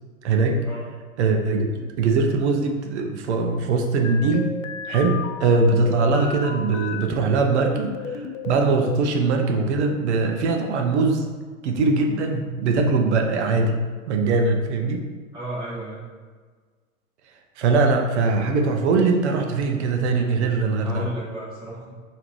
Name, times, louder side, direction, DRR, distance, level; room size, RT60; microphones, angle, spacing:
voice 1, 0.2-0.7 1.2-4.5 4.9-11.3 11.6-13.8 14.1-15.1 17.6-21.1, right 3 dB, 55° right, 3 dB, 0.7 m, -21 dB
sound 1, 4.0-7.0 7.5-9.1, left 5 dB, 70° left, 0.5 m, -33 dB
voice 2, 15.3-16.1 20.8-21.9, right 2 dB, 10° right, -9 dB, 0.8 m, -33 dB
3.5 x 2.8 x 4.5 m, 1.5 s
figure-of-eight pair, 100°, 41 cm